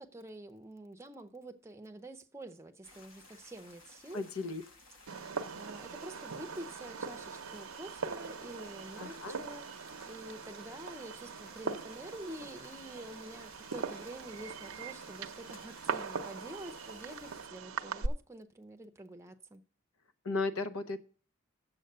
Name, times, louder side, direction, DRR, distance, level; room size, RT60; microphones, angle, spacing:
voice 1, 0.0-4.2 5.2-19.6, right 1 dB, 15° right, 0.6 m, -48 dB
sound 1, 2.8-17.5, left 2 dB, 65° left, 1.4 m, -57 dB
voice 2, 4.1-4.6 9.0-9.4 20.2-21.0, left 3 dB, 90° left, 0.9 m, -35 dB
Fireworks, 5.1-18.1, right 5 dB, 85° right, 0.7 m, -41 dB
7.9 x 7.4 x 6.6 m
head